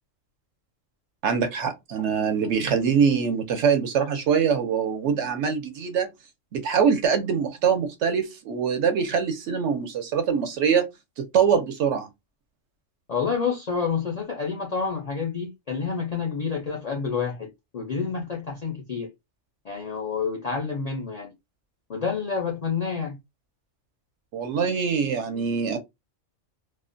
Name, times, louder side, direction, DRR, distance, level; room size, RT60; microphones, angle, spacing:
voice 1, 1.2-6.1 6.5-10.8 11.2-12.1 24.3-25.8, right 6 dB, 70° right, 0.8 m, -23 dB
voice 2, 13.1-19.1 19.6-21.3 21.9-23.2, left 5 dB, 60° left, 0.4 m, -28 dB
2.4 x 2.1 x 2.5 m
omnidirectional pair, 1.3 m